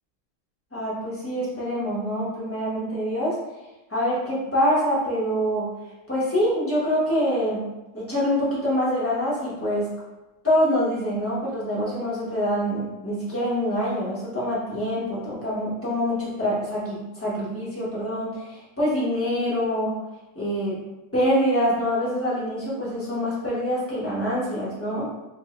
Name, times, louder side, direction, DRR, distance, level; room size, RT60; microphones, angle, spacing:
voice 1, 0.7-3.4 3.9-5.7 6.1-7.7 7.9-9.9 10.4-20.0 20.3-20.8 21.1-25.1, equal, 15° left, -8 dB, 0.4 m, -25 dB
3.4 x 2.1 x 4.0 m, 1.0 s
omnidirectional pair, 2.1 m